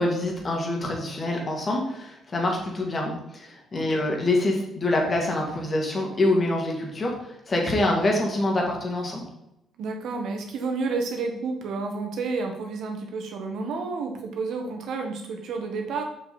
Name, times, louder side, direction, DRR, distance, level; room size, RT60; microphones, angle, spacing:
voice 1, 0.0-9.2, left 1 dB, 35° left, 0 dB, 2.5 m, -25 dB
voice 2, 9.8-16.0, right 4 dB, 75° right, 3 dB, 1.7 m, -30 dB
7.1 x 5.9 x 4.4 m, 0.83 s
cardioid pair, 90°, 0 cm